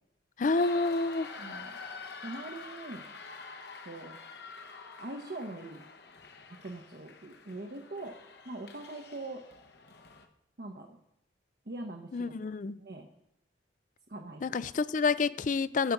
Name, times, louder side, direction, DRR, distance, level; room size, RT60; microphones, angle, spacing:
voice 1, 0.4-1.3 12.1-12.8 14.4-15.9, left 4 dB, 45° left, 16 dB, 0.4 m, -28 dB
sound 1, 0.6-10.3, left 4 dB, 60° left, 1.1 m, -47 dB
voice 2, 1.4-1.7 2.2-3.0 3.8-4.2 5.0-5.8 6.6-8.1 8.4-9.4 10.6-11.0 11.7-12.2 12.8-13.1 14.1-14.4, right 2 dB, 55° right, 2 dB, 0.9 m, -42 dB
14.0 x 5.1 x 7.1 m, 0.81 s
head